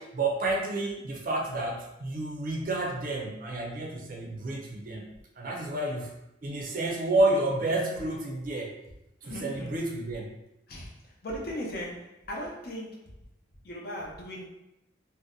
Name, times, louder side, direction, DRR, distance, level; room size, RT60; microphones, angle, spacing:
voice 1, 0.0-5.1 5.4-6.1 6.4-8.7 9.2-10.3, right 2 dB, 45° right, 0 dB, 0.5 m, -30 dB
voice 2, 9.2-9.7 10.7-13.1 13.6-14.5, equal, 50° left, -2 dB, 0.6 m, -38 dB
2.6 x 2.1 x 3.7 m, 0.87 s
head